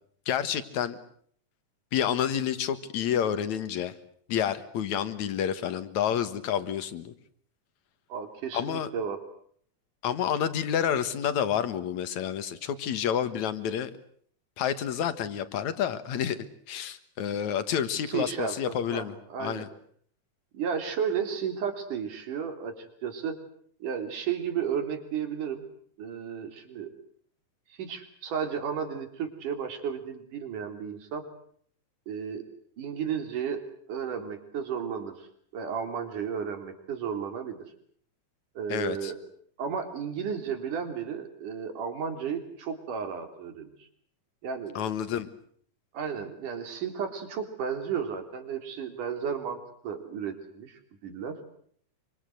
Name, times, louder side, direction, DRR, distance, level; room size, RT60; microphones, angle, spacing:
voice 1, 0.3-1.0 1.9-3.9 4.3-7.1 8.5-8.9 10.0-13.9 14.6-19.7 38.7-39.1 44.7-45.3, left 9 dB, 65° left, 12 dB, 2.8 m, -29 dB
voice 2, 8.1-9.2 18.0-19.6 20.5-23.4 23.8-25.6 26.0-26.9 27.7-31.3 32.1-32.4 32.8-35.3 35.5-37.6 38.5-39.2 39.6-43.9 44.4-44.7 45.9-51.4, right 7 dB, 75° right, 7 dB, 4.9 m, -33 dB
27.0 x 25.5 x 7.9 m, 0.62 s
omnidirectional pair, 3.7 m